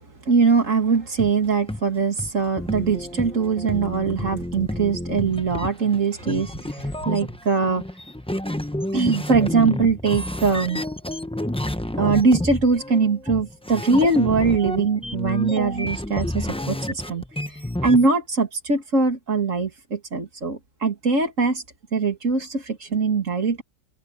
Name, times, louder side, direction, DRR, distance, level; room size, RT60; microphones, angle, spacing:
voice 1, 0.3-7.8 8.9-10.8 12.0-17.2 17.8-21.6 21.9-23.6, right 4 dB, 75° right, 2.9 m, -22 dB
sound 1, 1.2-1.3 1.7-1.8 2.2-2.3 2.6-18.1, left 1 dB, 5° left, 0.7 m, -30 dB
omnidirectional pair, 1.4 m